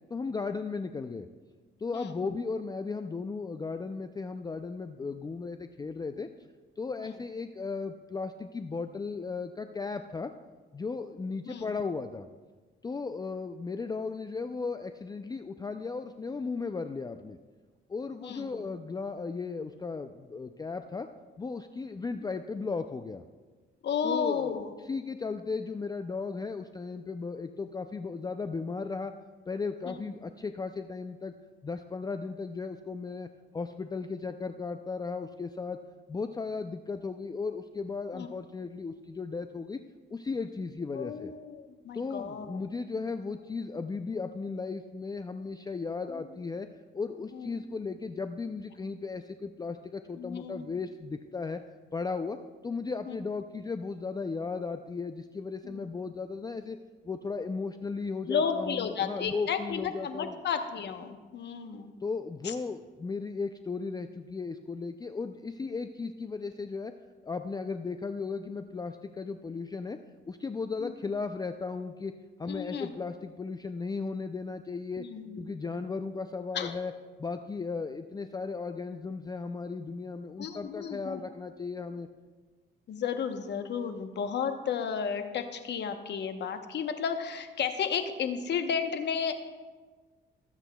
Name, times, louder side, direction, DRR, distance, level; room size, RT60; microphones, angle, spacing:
voice 1, 0.1-1.3 1.8-6.3 6.8-10.3 10.7-12.3 12.8-17.4 17.9-21.1 21.4-23.2 24.0-24.5 24.8-29.1 29.5-31.3 31.6-33.3 33.5-35.8 36.1-39.8 40.1-41.3 41.9-46.7 46.9-51.6 51.9-52.4 52.6-56.8 57.0-60.4 62.0-66.9 67.2-70.0 70.3-72.1 72.4-75.1 75.4-76.9 77.2-82.1, left 4 dB, 20° left, 8 dB, 0.4 m, -36 dB
voice 2, 18.2-18.6 23.8-24.7 29.9-30.1 38.1-38.3 40.9-42.6 46.1-46.3 47.3-47.6 50.2-50.7 53.1-53.2 55.6-55.9 58.3-61.9 62.4-62.6 70.8-70.9 72.5-72.9 75.0-75.4 76.5-76.7 80.4-81.2 82.9-89.3, left 7 dB, 60° left, 7 dB, 1.0 m, -33 dB
20.5 x 8.1 x 2.3 m, 1.4 s
cardioid pair, 90°, 20 cm